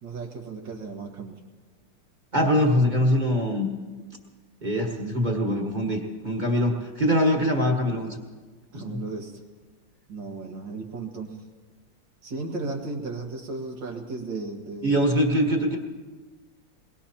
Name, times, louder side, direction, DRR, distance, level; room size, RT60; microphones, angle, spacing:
voice 1, 0.0-1.4 8.7-9.4 10.1-11.4 12.2-15.1, right 3 dB, 80° right, 1 dB, 2.4 m, -35 dB
voice 2, 2.3-3.7 4.6-8.2 8.7-9.0 14.8-15.8, equal, 25° right, 0 dB, 1.5 m, -23 dB
22.0 x 21.0 x 2.9 m, 1.4 s
omnidirectional pair, 2.0 m